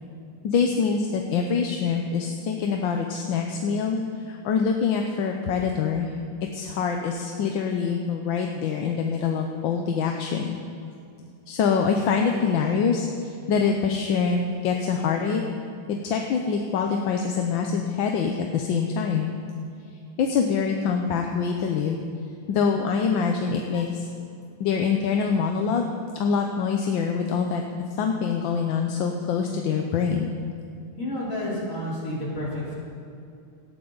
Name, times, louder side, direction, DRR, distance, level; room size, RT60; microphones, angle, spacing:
voice 1, 0.4-6.1 6.5-10.6 11.5-15.4 15.9-19.3 20.2-22.0 22.5-24.1 24.6-25.9 26.1-27.6 28.0-30.3, left 6 dB, 80° left, 3 dB, 1.6 m, -25 dB
voice 2, 31.0-32.8, left 1 dB, 40° left, -7 dB, 4.1 m, -30 dB
18.0 x 13.5 x 4.0 m, 2.6 s
omnidirectional pair, 2.1 m